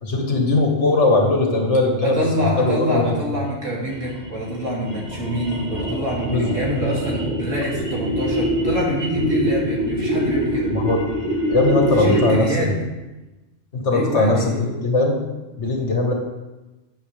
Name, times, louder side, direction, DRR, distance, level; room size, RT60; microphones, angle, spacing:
voice 1, 0.0-2.2 2.6-3.2 6.3-6.5 10.6-11.0 11.5-12.7 13.7-15.2 15.6-16.1, left 2 dB, 65° left, 1 dB, 2.0 m, -19 dB
voice 2, 2.0-10.7 11.9-12.7 13.9-14.6, equal, 85° right, -4 dB, 3.1 m, -25 dB
sound 1, 3.9-12.5, equal, 5° right, 3.9 m, -24 dB
12.0 x 8.5 x 3.4 m, 1.1 s
omnidirectional pair, 1.3 m